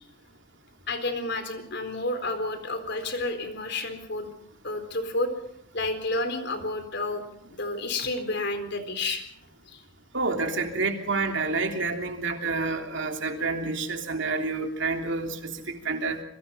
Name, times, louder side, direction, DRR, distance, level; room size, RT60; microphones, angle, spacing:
voice 1, 0.9-4.3 4.6-5.3 5.7-7.3 7.5-9.2 9.7-9.8, left 2 dB, 55° left, 8 dB, 4.1 m, -30 dB
voice 2, 10.1-16.2, right 3 dB, 60° right, 4 dB, 3.2 m, -29 dB
27.0 x 23.0 x 5.7 m, 0.69 s
head